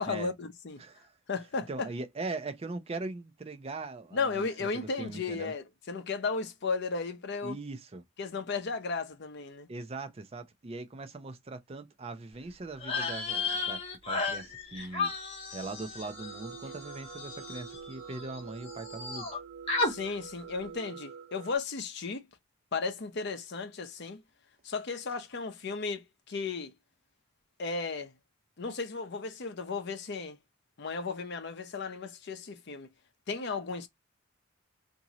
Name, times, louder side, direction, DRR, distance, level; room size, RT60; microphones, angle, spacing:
voice 1, 0.0-0.8 1.3-1.9 4.1-7.6 8.2-9.7 14.8-14.9 19.8-22.2 22.7-24.2 24.6-26.7 27.6-28.1 28.6-30.4 30.8-32.9 33.3-33.9, left 4 dB, 55° left, 0.6 m, -35 dB
voice 2, 0.8-1.1 1.7-4.5 4.7-5.5 7.4-8.0 9.7-13.8 14.1-15.1 15.5-19.4, right 3 dB, 30° right, 0.5 m, -40 dB
sound 1, 12.8-18.4 18.6-19.4 19.7-19.9, left 3 dB, 30° left, 1.0 m, -34 dB
sound 2, 16.1-21.6, right 6 dB, 80° right, 0.5 m, -47 dB
2.9 x 2.6 x 2.7 m
head